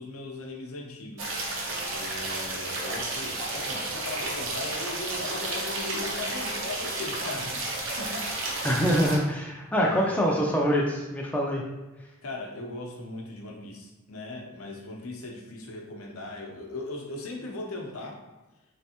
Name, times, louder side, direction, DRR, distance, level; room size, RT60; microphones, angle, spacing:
voice 1, 0.0-1.3 1.9-8.3 9.7-10.4 12.2-18.2, left 2 dB, 80° left, 0 dB, 0.7 m, -38 dB
sound 1, 1.2-9.2, right 2 dB, 60° right, 0.7 m, -32 dB
voice 2, 8.6-11.6, equal, 5° left, -2 dB, 0.3 m, -25 dB
3.4 x 3.3 x 2.8 m, 1.1 s
head